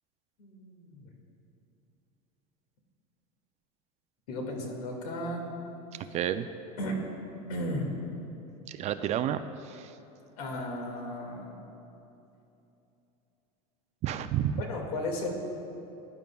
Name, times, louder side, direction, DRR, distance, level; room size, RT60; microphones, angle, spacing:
voice 1, 0.4-1.1 4.3-5.5 6.8-7.0 7.5-7.9 10.4-11.6 14.6-15.3, left 1 dB, 90° left, 1 dB, 2.1 m, -35 dB
voice 2, 6.1-6.5 8.7-9.9 14.0-14.6, right 10 dB, 35° right, 11 dB, 0.4 m, -30 dB
17.0 x 11.0 x 2.3 m, 2.9 s
supercardioid pair, 130°, 19 cm